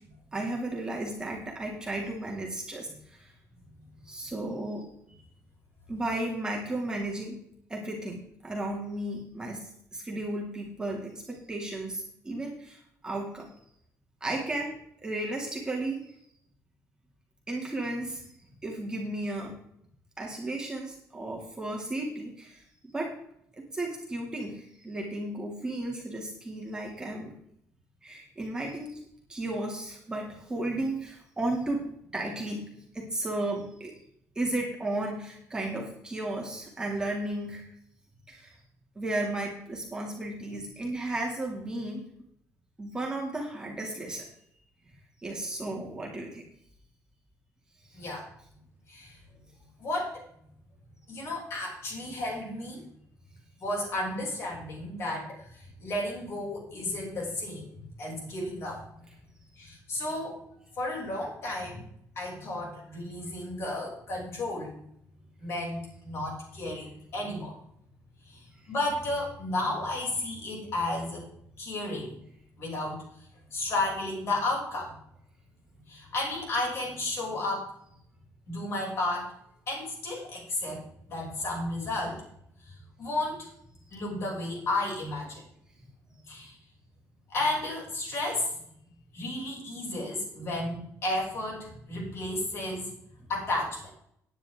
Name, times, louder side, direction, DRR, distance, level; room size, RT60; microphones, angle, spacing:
voice 1, 0.3-3.3 4.0-4.9 5.9-7.4 7.7-13.6 14.2-14.7 15.0-16.0 17.5-18.2 18.6-19.5 20.2-22.6 22.9-23.2 23.6-27.3 28.0-29.0 29.3-32.7 32.9-33.9 34.4-37.7 38.3-38.6 39.0-42.0 42.8-44.3 45.2-46.4 47.9-48.1, right 2 dB, 10° right, -1 dB, 2.4 m, -34 dB
voice 2, 47.9-48.3 48.9-49.2 49.8-50.2 51.1-52.8 53.6-58.8 59.6-60.4 60.8-61.8 62.1-64.8 65.4-67.5 68.2-71.2 71.6-72.2 72.6-73.3 73.5-74.9 75.9-77.7 78.5-79.3 79.7-82.2 82.6-83.5 83.9-85.4 86.3-86.5 87.3-88.6 89.1-92.9 93.3-93.8, left 2 dB, 45° left, -2 dB, 6.4 m, -33 dB
15.5 x 10.0 x 3.7 m, 0.69 s
cardioid pair, 170°, 6 cm